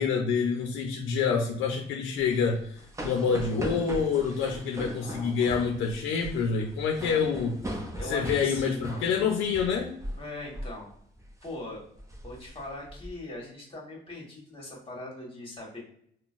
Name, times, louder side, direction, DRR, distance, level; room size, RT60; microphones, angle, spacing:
voice 1, 0.0-7.8 8.1-9.9, left 6 dB, 85° left, 1 dB, 0.5 m, -27 dB
sound 1, 2.2-10.3 10.5-10.8 11.2-11.5 12.0-13.1, right 1 dB, 15° right, 0.5 m, -39 dB
voice 2, 5.0-5.6 8.0-9.0 10.1-10.9 11.4-11.8 12.2-15.8, left 1 dB, 25° left, -3 dB, 1.3 m, -40 dB
3.8 x 2.1 x 2.4 m, 0.67 s
cardioid pair, 90°, 20 cm